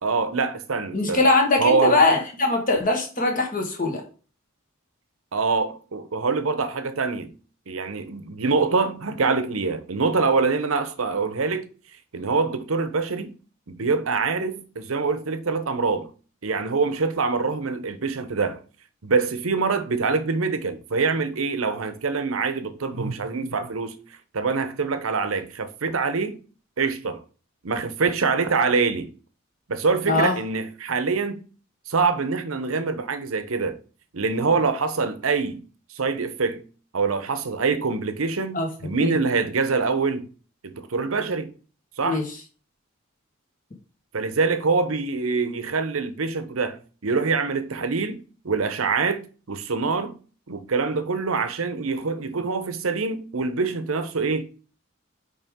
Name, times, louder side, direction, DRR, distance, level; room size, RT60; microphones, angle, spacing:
voice 1, 0.0-1.2 1.6-2.0 5.3-7.3 7.7-11.7 12.1-13.3 13.7-16.1 16.4-18.6 19.0-23.9 24.3-26.4 26.8-27.2 27.6-29.1 29.7-31.4 31.9-33.8 34.1-35.6 35.9-36.6 36.9-40.3 40.6-41.5 42.0-42.2 44.1-50.2 50.5-54.5, right 4 dB, 85° right, 0.8 m, -25 dB
voice 2, 0.9-4.0 30.0-30.3 38.5-39.1 42.0-42.2, left 2 dB, 40° left, 1.5 m, -21 dB
5.5 x 4.8 x 3.6 m
head